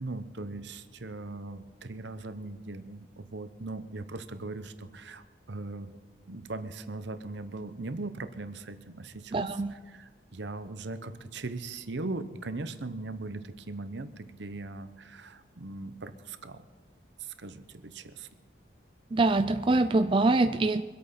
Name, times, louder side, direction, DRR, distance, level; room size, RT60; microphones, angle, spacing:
voice 1, 0.0-6.0 6.3-16.7 17.2-18.3, right 2 dB, 65° right, 11 dB, 0.9 m, -39 dB
voice 2, 9.3-9.7 19.1-20.8, right 2 dB, 25° right, 9 dB, 0.3 m, -24 dB
23.5 x 8.6 x 5.7 m, 1.5 s
head